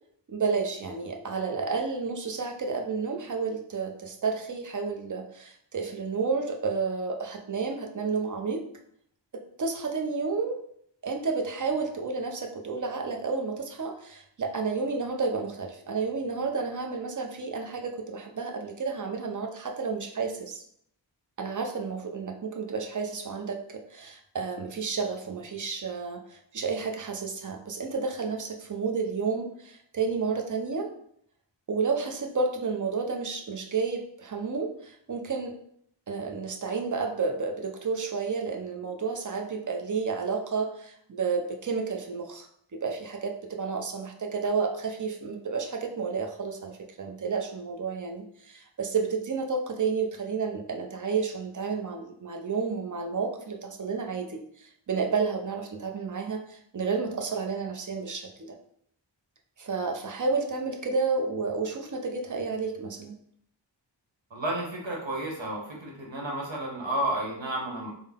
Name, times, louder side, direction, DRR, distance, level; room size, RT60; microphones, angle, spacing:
voice 1, 0.3-8.6 9.3-10.6 11.0-20.6 21.4-30.9 31.7-35.5 36.1-42.5 42.7-58.5 59.6-63.1, right 4 dB, 45° right, 3 dB, 0.6 m, -31 dB
voice 2, 64.3-67.9, right 1 dB, 80° right, -2 dB, 1.1 m, -31 dB
3.7 x 2.1 x 3.5 m, 0.67 s
wide cardioid pair, 50°, 45 cm